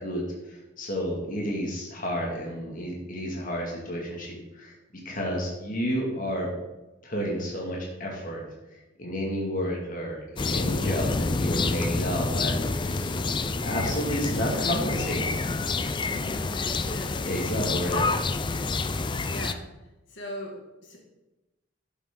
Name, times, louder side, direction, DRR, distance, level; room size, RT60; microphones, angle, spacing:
voice 1, 0.0-4.7 5.0-6.5 7.0-8.4 8.7-13.2 13.6-15.2 17.2-18.2, equal, 45° left, -2 dB, 2.2 m, -31 dB
sound 1, 10.4-19.5, left 3 dB, 25° left, 0.4 m, -28 dB
voice 2, 16.1-17.2 19.2-19.7 20.1-21.0, left 1 dB, 70° left, -1 dB, 2.1 m, -40 dB
11.5 x 8.1 x 3.8 m, 1.0 s
head